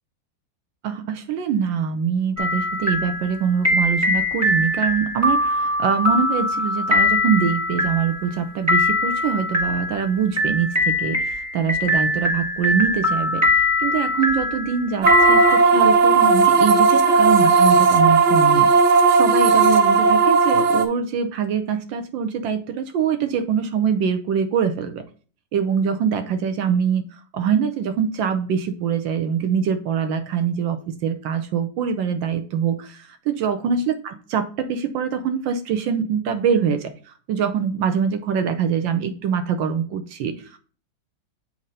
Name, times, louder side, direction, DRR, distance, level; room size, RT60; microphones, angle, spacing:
voice 1, 0.8-13.4 13.8-18.7 19.1-25.0 25.5-27.0 27.3-40.6, right 7 dB, 85° right, 8 dB, 1.5 m, -24 dB
sound 1, 2.4-15.6, left 2 dB, 10° right, 1.4 m, -22 dB
sound 2, 15.0-20.8, right 4 dB, 55° right, 0.8 m, -15 dB
7.8 x 2.9 x 5.3 m, 0.39 s
omnidirectional pair, 2.0 m